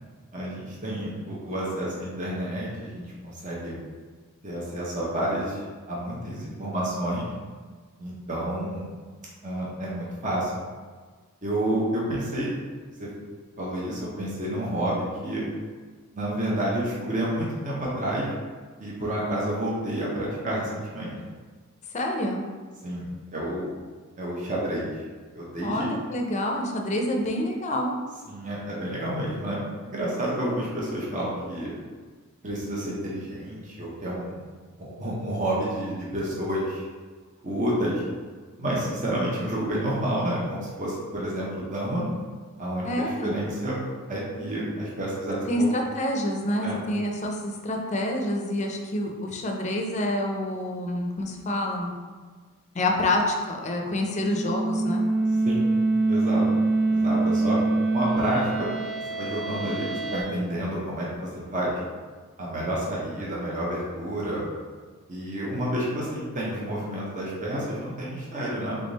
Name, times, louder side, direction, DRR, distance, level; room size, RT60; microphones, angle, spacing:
voice 1, 0.3-3.8 4.4-7.3 8.0-8.9 9.4-10.5 11.4-12.6 13.0-13.1 13.6-15.4 16.1-18.3 18.8-21.2 22.8-23.7 24.2-24.9 25.3-25.9 28.3-29.6 29.8-31.8 32.4-34.4 34.8-36.8 37.4-38.0 38.6-42.0 42.6-43.8 44.1-45.7 46.6-46.8 55.4-55.6 56.1-56.4 56.9-57.6 57.9-58.7 59.1-61.8 62.4-64.5 65.1-68.8, right 1 dB, 35° right, -5 dB, 0.8 m, -29 dB
voice 2, 21.9-22.4 25.6-27.9 42.8-43.3 45.5-51.9 52.7-55.0, left 1 dB, 30° left, 2 dB, 0.5 m, -27 dB
sound 1, 53.9-60.2, right 2 dB, 10° left, 0.9 m, -25 dB
3.6 x 3.5 x 4.0 m, 1.5 s
head